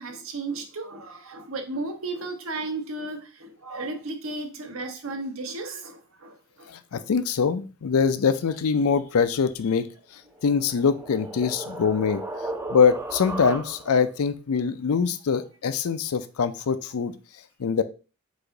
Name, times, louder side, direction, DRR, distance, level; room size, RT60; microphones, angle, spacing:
voice 1, 0.0-7.1, right 2 dB, 70° right, 0.8 m, -34 dB
voice 2, 6.7-9.9 10.1-12.2 12.7-17.1 17.6-17.8, left 6 dB, 80° left, 0.4 m, -23 dB
sound 1, 10.3-14.1, right 1 dB, 10° right, 0.4 m, -35 dB
4.9 x 2.5 x 3.8 m
head